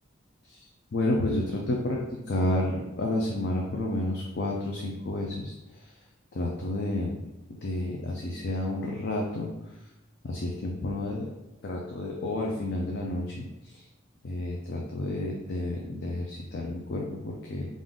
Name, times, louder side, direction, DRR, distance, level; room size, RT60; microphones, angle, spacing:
voice 1, 0.9-5.5 6.3-7.1 7.6-9.5 10.2-11.3 11.6-13.3 14.2-17.7, left 1 dB, 55° left, -1 dB, 0.5 m, -30 dB
3.7 x 2.5 x 3.6 m, 1.0 s
head